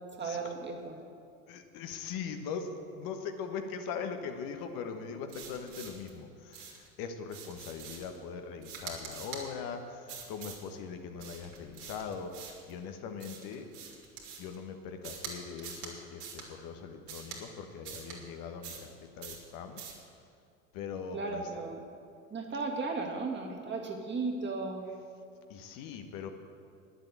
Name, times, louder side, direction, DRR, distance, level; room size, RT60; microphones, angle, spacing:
voice 1, 0.1-1.0 21.1-21.8 22.3-24.9, right 3 dB, 25° right, 1 dB, 2.1 m, -35 dB
voice 2, 1.5-13.7 14.4-19.8 20.7-21.4 25.5-26.3, left 6 dB, 55° left, 6 dB, 1.3 m, -41 dB
sound 1, 5.3-6.1 6.5-6.9 7.3-8.2 8.6-9.4 10.1-10.6 11.2-12.7 13.2-14.5 15.0-15.3 15.6-15.9 16.2-16.5 17.1-17.4 17.8-18.2 18.6-18.9 19.2-19.4 19.8-20.0, right 6 dB, 65° right, 2.8 m, -45 dB
10.0 x 7.9 x 8.6 m, 2.5 s
hypercardioid pair, 75°, 41 cm